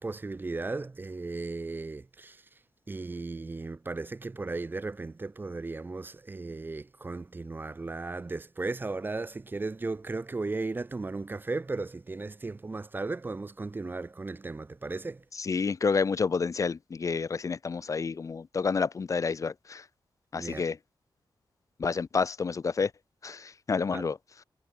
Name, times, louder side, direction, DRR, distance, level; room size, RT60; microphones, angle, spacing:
voice 1, 0.0-2.4 2.9-15.2 20.3-20.6 23.9-24.0, right 3 dB, 25° right, 0.7 m, -36 dB
voice 2, 15.3-19.9 20.3-20.8 21.8-22.9 23.2-24.4, left 5 dB, 40° left, 0.7 m, -29 dB
wide cardioid pair, 145°, 8 cm